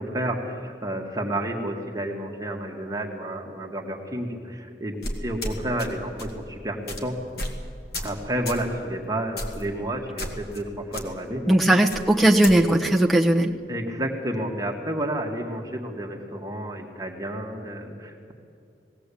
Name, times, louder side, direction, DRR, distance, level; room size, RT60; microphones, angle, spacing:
voice 1, 0.0-7.1 8.0-11.4 13.7-18.3, right 1 dB, 20° right, 1 dB, 1.7 m, -30 dB
sound 1, 5.0-5.9 6.2-6.4 6.9-7.0 7.4-7.6 7.9-8.2 8.5-8.7 9.4-9.6 10.2-10.6 10.9-11.0 11.9-12.6, left 1 dB, 60° left, 2.4 m, -32 dB
voice 2, 11.5-13.5, right 1 dB, ahead, 3 dB, 1.2 m, -18 dB
20.0 x 16.5 x 8.4 m, 2.5 s
head